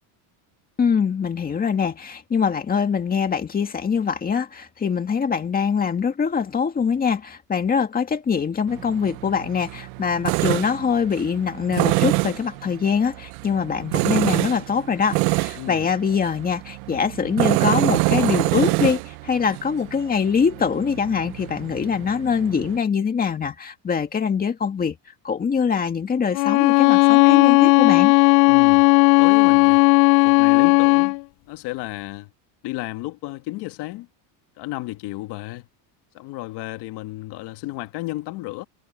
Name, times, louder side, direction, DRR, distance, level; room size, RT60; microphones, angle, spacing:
voice 1, 0.8-25.0 25.2-28.1, left 6 dB, 15° left, 2.0 m, -23 dB
Tools, 8.7-22.8, right 26 dB, 60° right, 0.6 m, -26 dB
voice 2, 15.6-15.9 28.5-28.9 29.2-29.8 30.2-31.2 31.5-32.3 32.6-34.1 34.6-35.7 36.1-38.6, left 18 dB, 50° left, 1.9 m, -32 dB
Bowed string instrument, 26.3-31.2, left 26 dB, 75° left, 0.5 m, -15 dB
cardioid pair, 160°, 50 cm